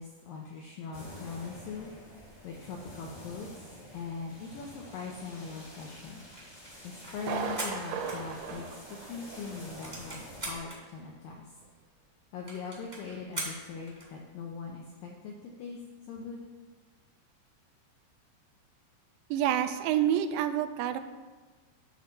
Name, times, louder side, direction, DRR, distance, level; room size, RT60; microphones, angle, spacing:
voice 1, 0.0-1.9 2.4-3.7 3.9-6.2 6.8-11.5 12.3-15.8 16.1-16.4, left 5 dB, 80° left, 0 dB, 2.0 m, -41 dB
sound 1, 0.9-10.6, left 1 dB, 25° left, 1.0 m, -49 dB
sound 2, 6.3-8.8 9.2-9.3 9.5-10.8 11.4-11.5 11.7-11.8 12.0-12.1 12.5-14.1, right 2 dB, 25° right, 0.9 m, -41 dB
Thunder, 7.2-9.8 10.0-10.1 10.7-10.8, right 6 dB, 75° right, 2.6 m, -37 dB
voice 2, 19.3-21.0, right 10 dB, 90° right, 9 dB, 2.9 m, -27 dB
11.0 x 4.0 x 6.8 m, 1.3 s
omnidirectional pair, 5.1 m